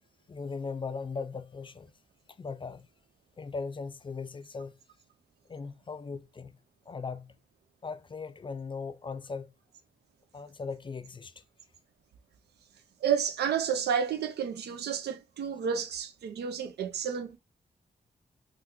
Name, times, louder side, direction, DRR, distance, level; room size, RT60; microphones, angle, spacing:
voice 1, 0.3-1.9 2.4-2.9 3.4-4.7 5.5-6.5 6.9-7.3 7.8-9.5 10.3-11.4, left 4 dB, 30° left, 0.3 m, -38 dB
voice 2, 13.0-17.4, right 7 dB, 80° right, 0.4 m, -30 dB
3.5 x 2.1 x 2.9 m
cardioid pair, 50°, 17 cm